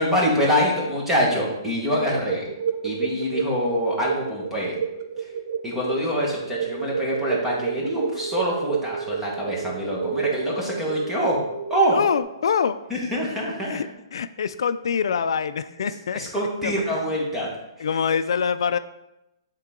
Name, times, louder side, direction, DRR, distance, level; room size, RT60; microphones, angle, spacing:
voice 1, 0.0-2.5 2.8-4.7 5.2-5.3 5.6-11.4 11.7-12.0 12.9-13.8 16.1-17.5, equal, 5° right, -4 dB, 1.5 m, -25 dB
sound 1, 2.0-12.2, right 6 dB, 50° right, 0.6 m, -30 dB
voice 2, 11.9-12.8 13.6-13.9 14.1-16.2 16.6-16.8 17.8-18.8, left 7 dB, 75° left, 12 dB, 0.3 m, -24 dB
9.4 x 3.8 x 3.7 m, 0.91 s
hypercardioid pair, 165°, 3 cm